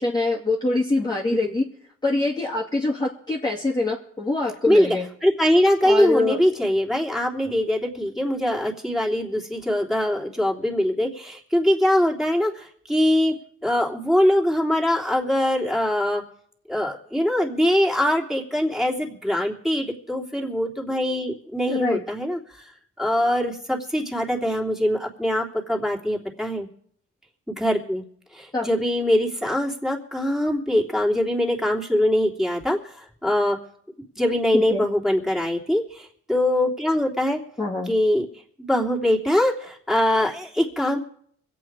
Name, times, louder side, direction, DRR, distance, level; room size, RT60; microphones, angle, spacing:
voice 1, 0.0-1.6 2.0-5.1 5.8-6.4 21.7-22.0 28.5-28.7 34.5-34.8 37.6-37.9, left 2 dB, 15° left, -4 dB, 2.3 m, -24 dB
voice 2, 5.2-13.3 13.6-16.2 16.7-22.7 23.0-26.7 27.5-28.0 28.3-33.6 34.2-37.4 37.9-38.2 38.6-41.0, left 1 dB, ahead, -1 dB, 3.2 m, -22 dB
25.0 x 8.5 x 4.8 m, 0.64 s
cardioid pair, 90°, 30 cm